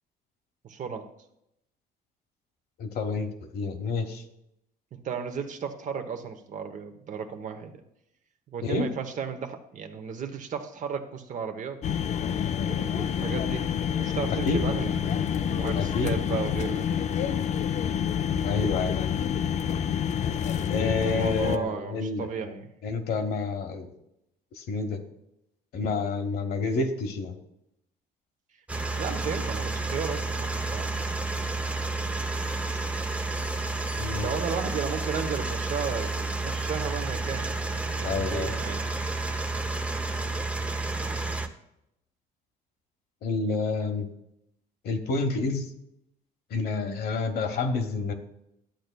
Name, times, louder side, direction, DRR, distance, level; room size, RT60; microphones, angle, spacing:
voice 1, 0.6-1.1 4.9-7.7 8.5-11.8 12.6-16.9 21.0-22.7 28.9-30.9 33.9-38.8 41.0-41.2, right 6 dB, 50° right, 7 dB, 0.9 m, -34 dB
voice 2, 2.8-4.2 8.6-8.9 14.4-14.7 15.7-16.1 18.4-18.9 20.7-22.3 22.8-23.9 24.6-25.0 25.7-27.3 34.0-34.3 38.0-38.5 43.2-44.1 44.8-45.7 46.5-48.1, left 3 dB, 65° left, 5 dB, 1.1 m, -29 dB
sound 1, 11.8-21.6, left 8 dB, 45° left, 0.4 m, -28 dB
sound 2, 28.7-41.5, right 3 dB, 5° right, 0.6 m, -30 dB
11.5 x 7.8 x 2.2 m, 0.81 s
cardioid pair, 110°, 17 cm